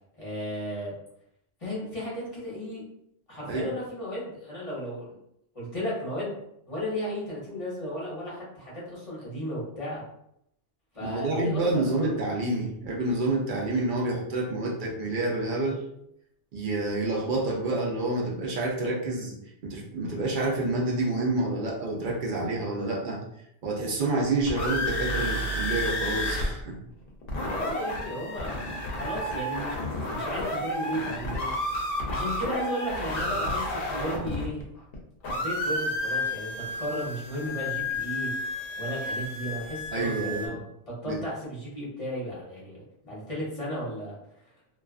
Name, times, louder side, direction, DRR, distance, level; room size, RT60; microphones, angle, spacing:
voice 1, 0.2-0.9 1.6-2.8 3.3-5.2 5.5-6.4 6.7-10.0 10.9-12.2 27.5-29.8 30.1-31.5 32.1-34.6 35.2-38.4 38.8-40.6 40.9-44.1, equal, 35° left, -7 dB, 0.8 m, -34 dB
voice 2, 11.0-15.8 16.5-19.3 19.6-23.2 23.6-26.8 39.9-40.5 41.0-41.2, right 2 dB, 60° right, -2 dB, 0.6 m, -28 dB
sound 1, 24.2-26.5 26.7-26.8 27.1-35.0 35.2-40.5, left 1 dB, 65° left, 0.7 m, -31 dB
2.4 x 2.3 x 2.3 m, 0.75 s
omnidirectional pair, 1.2 m